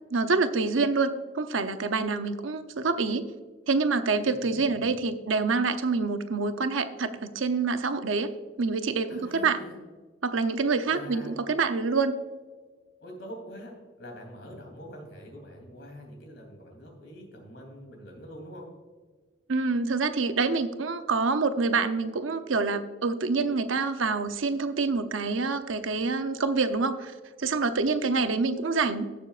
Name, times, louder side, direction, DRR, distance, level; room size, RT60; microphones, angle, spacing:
voice 1, 0.1-3.3 3.7-8.3 8.6-9.6 10.2-12.2 19.5-27.1 27.4-29.1, right 4 dB, 80° right, 9 dB, 0.7 m, -26 dB
voice 2, 4.4-4.8 9.1-9.8 10.9-11.3 13.0-18.7, equal, 60° left, 2 dB, 3.2 m, -45 dB
17.0 x 7.1 x 2.5 m, 1.4 s
head